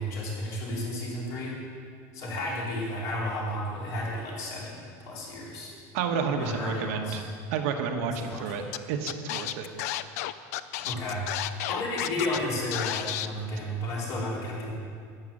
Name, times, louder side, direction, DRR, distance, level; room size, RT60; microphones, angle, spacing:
voice 1, 0.0-1.5 2.1-5.7 6.3-7.2 8.0-8.4 10.8-14.7, left 1 dB, 40° left, -4 dB, 3.8 m, -32 dB
voice 2, 5.9-7.2 7.5-9.7, right 6 dB, 70° right, 4 dB, 1.3 m, -30 dB
Scratching (performance technique), 8.7-8.8 9.1-12.4 12.7-13.3, left 14 dB, 80° left, 0.5 m, -32 dB
11.5 x 9.1 x 7.4 m, 2.1 s
cardioid pair, 175°, 8 cm